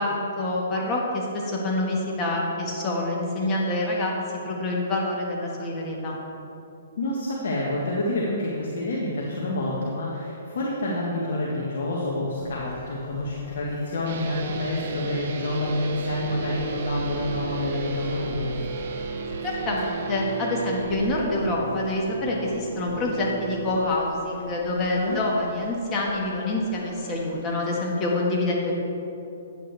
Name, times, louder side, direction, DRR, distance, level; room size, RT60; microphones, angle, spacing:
voice 1, 0.0-4.1 4.4-6.2 19.4-28.7, left 2 dB, 20° left, -3 dB, 1.6 m, -26 dB
voice 2, 7.0-18.7 25.0-25.2, left 1 dB, 70° left, -4 dB, 1.4 m, -28 dB
sound 1, 12.4-28.2, right 1 dB, 5° left, 1.7 m, -42 dB
sound 2, 14.1-23.8, right 5 dB, 50° right, 0.8 m, -34 dB
9.7 x 8.5 x 3.4 m, 2.8 s
hypercardioid pair, 155°, 0 cm